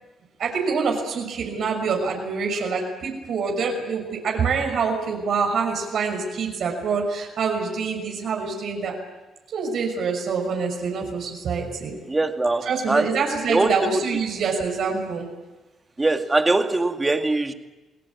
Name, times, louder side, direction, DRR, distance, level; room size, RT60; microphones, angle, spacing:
voice 1, 0.4-9.0 9.5-12.0 12.7-15.3, right 5 dB, 65° right, 1 dB, 6.0 m, -26 dB
voice 2, 12.1-13.1 13.5-14.0 16.0-17.5, right 2 dB, 20° right, 6 dB, 2.2 m, -22 dB
29.0 x 18.5 x 8.6 m, 1.1 s
cardioid pair, 90°, 0 cm